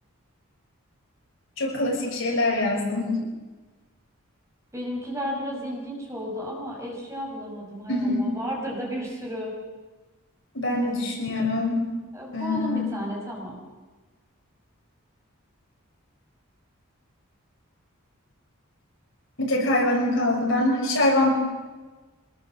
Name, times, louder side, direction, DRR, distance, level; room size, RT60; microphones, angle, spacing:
voice 1, 1.6-3.2 7.9-8.3 10.5-11.8 12.3-12.9 19.4-21.3, left 2 dB, 65° left, 0 dB, 6.1 m, -24 dB
voice 2, 4.7-9.5 10.8-11.1 12.1-13.6, equal, 15° right, -2 dB, 5.8 m, -33 dB
24.5 x 20.5 x 7.4 m, 1.3 s
head